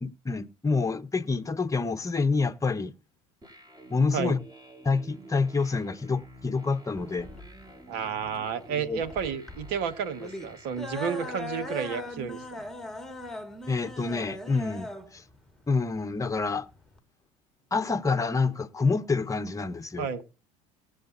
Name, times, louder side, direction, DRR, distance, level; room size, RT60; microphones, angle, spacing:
voice 1, 0.0-2.9 3.9-4.4 4.8-7.3 8.7-9.0 13.7-15.2 15.7-16.7 17.7-20.1, left 4 dB, 15° left, 1.1 m, -27 dB
sound 1, 3.4-11.4, right 1 dB, 20° right, 4.3 m, -50 dB
sound 2, 7.0-17.0, left 1 dB, ahead, 2.1 m, -40 dB
voice 2, 7.9-12.6 20.0-20.2, right 7 dB, 65° right, 1.7 m, -31 dB
19.0 x 8.1 x 2.7 m
hypercardioid pair, 85°, 18 cm